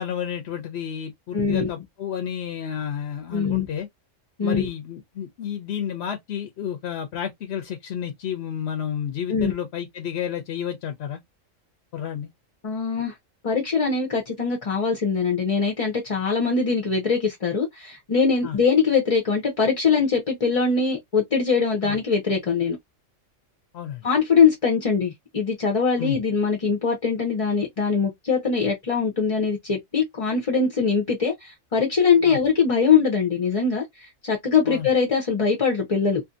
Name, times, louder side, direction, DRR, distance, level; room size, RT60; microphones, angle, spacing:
voice 1, 0.0-3.9 4.4-11.2 11.9-12.3 18.4-18.6 21.8-22.0 23.7-24.1 26.0-26.2 32.2-32.4 34.7-34.9, left 9 dB, 60° left, 0.9 m, -31 dB
voice 2, 1.3-1.7 3.3-3.7 4.4-4.7 9.3-9.5 12.6-13.1 13.4-22.8 24.0-36.2, left 5 dB, 35° left, 0.6 m, -22 dB
2.6 x 2.5 x 2.5 m
omnidirectional pair, 1.3 m